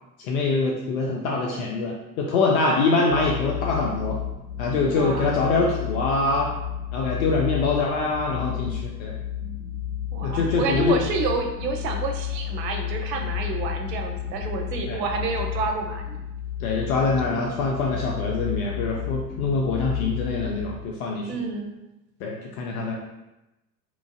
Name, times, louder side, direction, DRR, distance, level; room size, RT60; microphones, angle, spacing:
voice 1, 0.2-4.2 4.6-6.5 6.9-9.2 10.2-11.0 14.9-15.0 16.6-21.3 22.2-22.9, left 3 dB, 60° left, -1 dB, 0.6 m, -24 dB
sound 1, 3.1-20.8, left 10 dB, 15° left, 0.3 m, -32 dB
voice 2, 4.8-5.3 10.1-16.2 21.3-21.7, right 4 dB, 75° right, 4 dB, 0.6 m, -29 dB
3.0 x 2.4 x 2.5 m, 0.96 s
hypercardioid pair, 75°, 49 cm